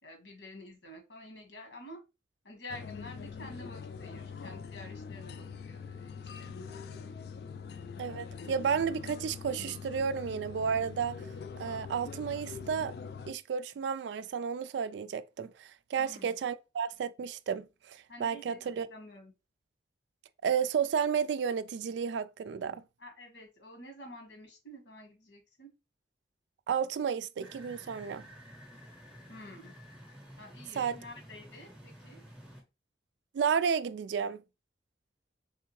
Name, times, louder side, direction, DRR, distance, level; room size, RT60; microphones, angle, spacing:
voice 1, 0.0-2.0 2.4-7.0 16.0-16.3 18.1-19.3 23.0-25.7 29.3-29.7 30.4-32.2, left 1 dB, 90° left, 1.5 m, -49 dB
sound 1, 2.7-13.3, left 5 dB, 60° left, 0.3 m, -43 dB
voice 2, 8.0-11.2 11.6-12.9 13.3-18.9 20.4-22.8 26.7-28.3 30.8-31.0 33.3-34.4, right 7 dB, 80° right, 0.3 m, -32 dB
sound 2, 27.4-32.6, equal, 5° right, 0.7 m, -51 dB
3.5 x 3.4 x 3.0 m
head